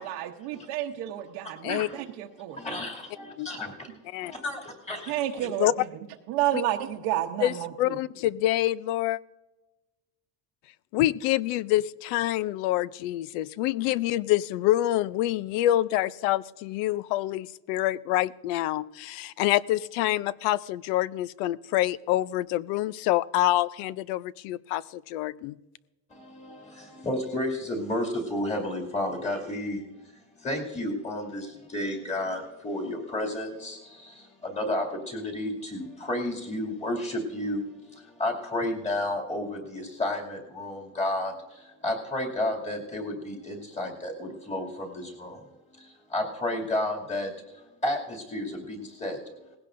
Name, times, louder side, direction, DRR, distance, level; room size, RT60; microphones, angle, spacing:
voice 1, 0.0-2.6 5.1-5.9 6.3-8.0, right 12 dB, 80° right, 1 dB, 1.0 m, -30 dB
voice 2, 1.7-2.0 2.6-3.7 4.2-4.6 4.9-5.1 26.4-29.8 30.4-31.5 31.7-33.8 34.4-37.6 38.2-41.3 41.8-45.3 46.1-47.3 47.8-49.2, left 1 dB, 20° left, -1 dB, 2.5 m, -31 dB
voice 3, 7.4-9.2 10.9-25.5, left 14 dB, 90° left, 19 dB, 0.6 m, -26 dB
19.0 x 16.0 x 2.6 m, 1.1 s
cardioid pair, 155°, 37 cm